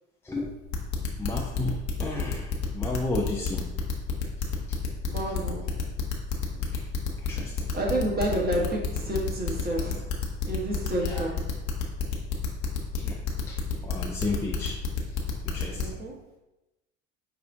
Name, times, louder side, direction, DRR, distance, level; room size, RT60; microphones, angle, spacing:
voice 1, 0.2-0.6 1.2-3.7 4.7-4.8 6.6-7.7 11.0-11.3 13.0-13.2 13.5-14.8 15.4-16.0, left 2 dB, 5° left, -4 dB, 0.5 m, -33 dB
sound 1, 0.7-15.8, left 6 dB, 45° left, 1.0 m, -29 dB
voice 2, 5.0-5.6 7.7-10.0 10.5-11.5 13.8-13.9 15.7-16.2, right 1 dB, 20° right, -2 dB, 1.4 m, -29 dB
5.4 x 2.4 x 3.5 m, 0.97 s
figure-of-eight pair, 65°, 40 cm